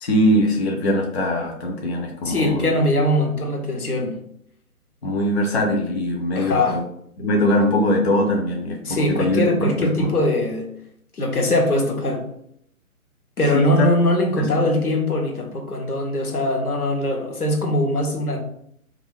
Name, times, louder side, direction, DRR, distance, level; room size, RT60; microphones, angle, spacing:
voice 1, 0.0-2.7 5.0-6.8 7.2-10.1 13.5-13.9 14.4-14.5, equal, 45° left, 1 dB, 0.6 m, -21 dB
voice 2, 2.2-4.2 6.3-6.8 8.8-10.7 11.2-12.2 13.4-18.4, left 1 dB, 80° left, 2 dB, 1.0 m, -21 dB
3.1 x 2.6 x 3.1 m, 0.71 s
figure-of-eight pair, 140°, 44 cm